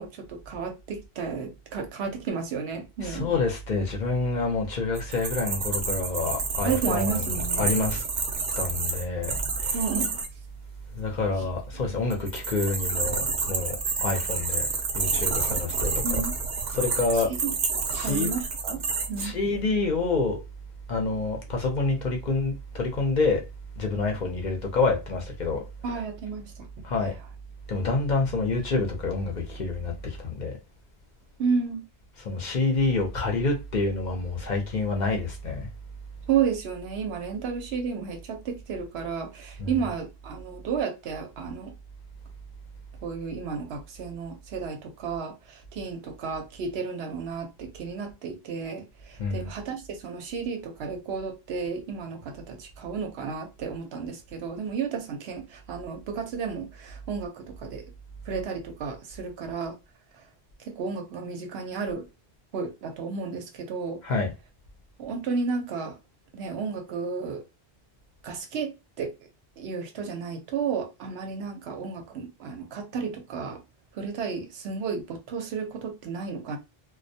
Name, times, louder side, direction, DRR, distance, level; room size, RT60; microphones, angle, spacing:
voice 1, 0.0-3.3 6.6-7.7 9.7-10.2 11.4-11.5 16.0-16.3 17.4-17.5 18.0-18.8 19.1-19.4 25.8-26.7 27.0-27.1 31.4-31.8 36.3-41.7 43.0-57.8 58.3-59.8 60.7-62.1 62.5-64.0 65.0-65.9 66.3-67.4 68.2-68.7 69.0-69.1 69.6-73.6 73.9-76.6, right 5 dB, 85° right, 0.9 m, -32 dB
voice 2, 3.0-8.0 8.6-9.9 10.9-14.7 14.9-16.2 16.7-17.3 17.9-18.3 19.2-20.4 20.9-23.4 23.8-25.6 25.9-26.0 26.8-27.1 27.7-30.6 32.2-35.7 39.6-39.8 49.2-49.5 64.0-64.3, left 3 dB, 55° left, 0.7 m, -27 dB
sound 1, 5.0-10.3 12.1-19.3, right 4 dB, 55° right, 0.6 m, -29 dB
2.2 x 2.1 x 2.6 m
omnidirectional pair, 1.0 m